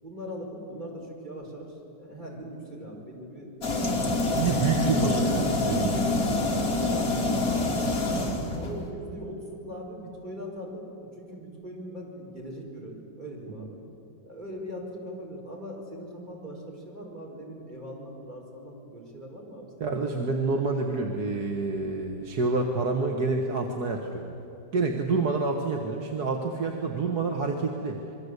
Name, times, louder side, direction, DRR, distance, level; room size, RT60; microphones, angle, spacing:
voice 1, 0.0-4.4 5.0-5.3 6.4-8.3 8.6-13.8 14.2-19.7, equal, 25° right, -2 dB, 5.6 m, -41 dB
sound 1, 3.6-8.9, left 2 dB, 50° left, 3.1 m, -26 dB
voice 2, 4.3-6.2 13.6-13.7 19.8-24.3 24.7-28.0, right 4 dB, 60° right, 2 dB, 2.0 m, -28 dB
27.0 x 22.0 x 8.2 m, 2.9 s
omnidirectional pair, 2.0 m